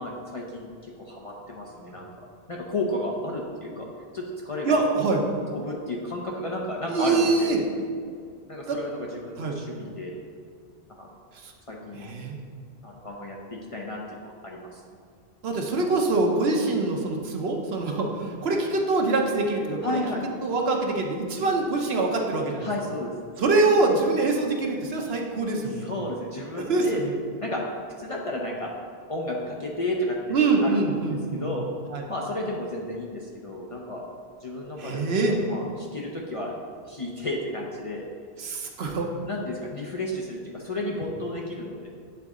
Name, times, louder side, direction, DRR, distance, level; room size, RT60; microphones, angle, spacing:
voice 1, 0.0-2.1 2.5-3.9 4.1-4.8 5.5-7.6 8.5-10.1 10.9-11.1 11.7-12.1 12.8-14.8 19.8-20.2 22.6-23.1 25.7-27.0 27.4-27.6 28.0-28.7 29.1-31.7 32.1-34.0 34.4-36.6 36.8-38.1 39.3-41.9, left 1 dB, 40° left, -2 dB, 0.5 m, -32 dB
voice 2, 4.6-5.2 6.9-7.6 8.7-8.8 9.4-9.6 11.3-11.5 12.0-12.4 15.4-20.0 20.4-22.7 23.4-25.9 26.6-27.1 30.3-31.5 31.9-32.0 34.8-35.3 38.4-39.1, right 3 dB, 70° right, 1 dB, 1.0 m, -24 dB
8.2 x 3.9 x 3.6 m, 2.1 s
omnidirectional pair, 1.1 m